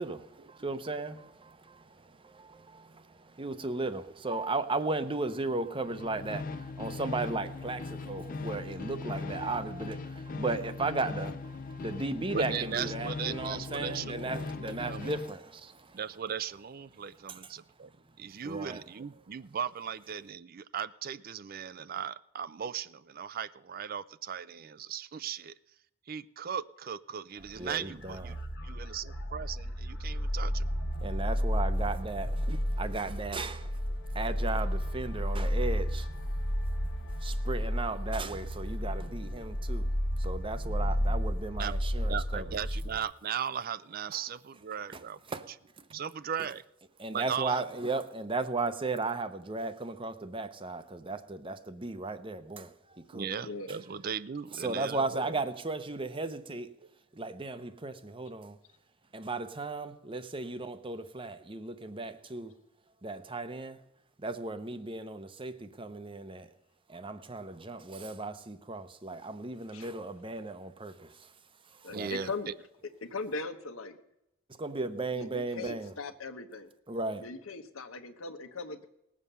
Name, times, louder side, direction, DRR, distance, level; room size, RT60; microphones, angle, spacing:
voice 1, 0.0-16.0 17.3-17.4 18.4-18.8 27.6-28.4 31.0-33.8 34.1-36.1 37.2-39.9 40.2-42.5 44.9-45.0 45.3-45.5 45.8-45.9 47.0-53.3 54.5-56.7 57.1-58.6 59.1-62.5 63.0-63.8 64.2-66.5 66.9-71.3 71.7-72.1 74.5-75.9 76.9-77.2, right 3 dB, 25° right, 0.8 m, -36 dB
sound 1, 5.8-15.4, left 3 dB, 40° left, 0.5 m, -39 dB
voice 2, 12.3-15.2 15.9-17.9 18.2-25.5 26.1-28.4 28.6-30.7 32.5-32.6 41.6-41.7 42.1-45.2 45.9-46.6 47.1-47.7 53.1-55.4 71.9-72.5, right 7 dB, 45° right, 0.4 m, -37 dB
sound 2, 27.4-43.0, equal, 60° left, 1.1 m, -32 dB
voice 3, 71.8-72.5 73.0-74.0 75.1-76.7 77.2-78.9, left 3 dB, 85° left, 1.2 m, -39 dB
19.0 x 7.5 x 6.8 m
head